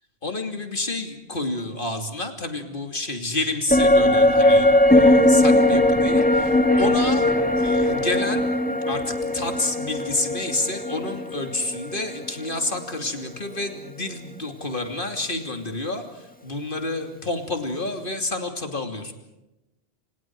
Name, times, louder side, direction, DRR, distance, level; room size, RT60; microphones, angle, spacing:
voice 1, 0.2-7.3 7.6-8.5 8.9-19.1, left 2 dB, 50° left, 4 dB, 3.1 m, -29 dB
sound 1, 3.7-13.2 13.5-13.6, left 1 dB, 10° left, 1.7 m, -19 dB
29.5 x 28.0 x 4.8 m, 0.96 s
omnidirectional pair, 1.1 m